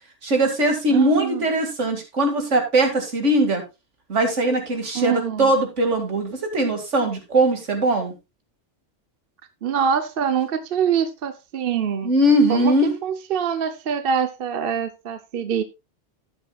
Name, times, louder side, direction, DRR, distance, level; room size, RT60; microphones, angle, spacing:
voice 1, 0.2-3.6 4.1-8.1 12.0-12.9, right 1 dB, 75° right, 2.5 m, -20 dB
voice 2, 0.9-1.5 4.9-5.5 9.6-12.1 12.5-15.6, right 7 dB, 55° right, 0.9 m, -24 dB
12.5 x 9.6 x 2.3 m
omnidirectional pair, 1.2 m